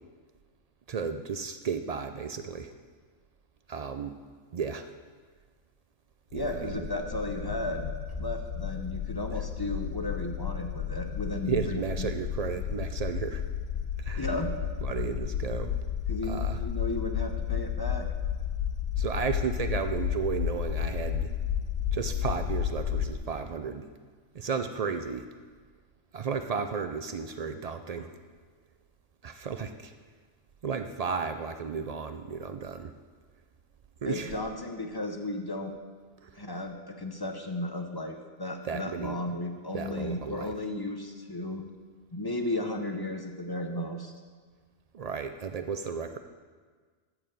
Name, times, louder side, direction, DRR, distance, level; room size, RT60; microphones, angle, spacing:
voice 1, 0.9-2.7 3.7-4.2 4.5-4.9 6.3-6.9 11.5-13.4 14.0-14.3 14.8-15.8 16.2-16.6 19.0-21.3 21.9-23.8 24.3-25.3 26.1-28.1 29.2-29.9 30.6-32.9 34.0-34.3 36.2-36.3 38.6-39.2 39.7-40.5 44.9-46.2, right 6 dB, 70° right, 8 dB, 0.3 m, -33 dB
voice 2, 6.3-7.8 8.2-12.1 14.1-14.5 16.1-18.1 34.0-35.7 36.3-41.6 42.1-44.1, left 1 dB, 25° left, 4 dB, 0.6 m, -34 dB
sound 1, 6.4-23.2, left 9 dB, 70° left, 0.9 m, -32 dB
13.0 x 4.9 x 7.4 m, 1.5 s
omnidirectional pair, 1.3 m